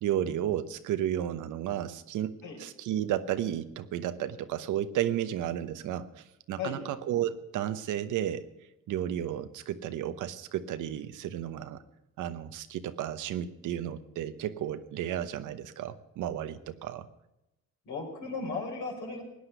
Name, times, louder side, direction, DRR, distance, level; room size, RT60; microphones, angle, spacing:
voice 1, 0.0-8.4 8.9-11.8 12.2-17.1, right 11 dB, 85° right, 12 dB, 1.0 m, -33 dB
voice 2, 17.9-19.2, left 4 dB, 75° left, 1 dB, 4.9 m, -36 dB
17.5 x 9.8 x 6.8 m, 0.89 s
cardioid pair, 90°, 30 cm